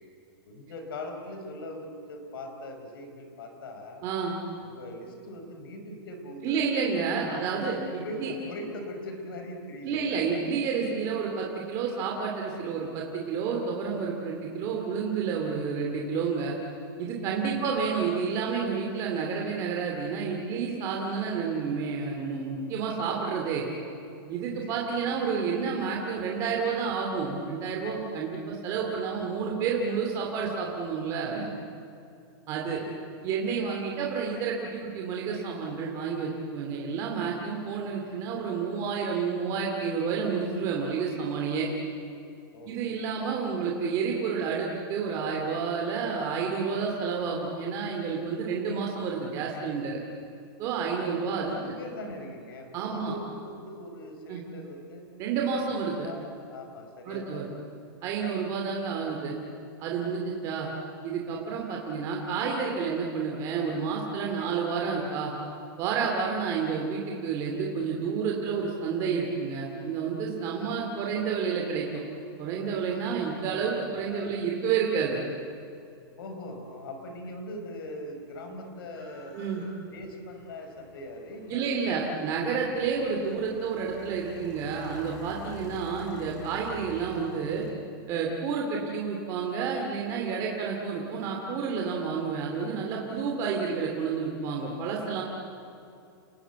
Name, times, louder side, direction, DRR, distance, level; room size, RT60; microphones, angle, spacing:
voice 1, 0.5-4.0 4.6-6.6 7.3-10.2 17.4-17.6 24.5-24.8 32.7-33.0 42.5-43.0 51.1-55.1 55.6-57.5 73.9-74.3 76.2-79.4 79.9-81.9 82.2-82.4, left 1 dB, 70° left, 4 dB, 5.0 m, -41 dB
voice 2, 4.0-4.4 6.4-8.3 9.8-16.5 17.0-23.6 24.3-31.4 32.5-32.8 33.2-41.7 42.7-50.0 50.6-51.7 52.7-53.1 54.3-54.4 55.2-56.1 57.1-57.5 58.0-59.4 59.8-60.7 61.0-65.3 65.8-72.0 72.4-75.2 78.5-78.6 79.3-79.6 81.5-87.6 88.1-95.2, right 5 dB, 25° right, -1 dB, 2.6 m, -30 dB
sound 1, 77.1-77.2 77.3-87.7, left 2 dB, 50° left, 4.9 m, -48 dB
30.0 x 20.0 x 8.2 m, 2.4 s
supercardioid pair, 175°, 12 cm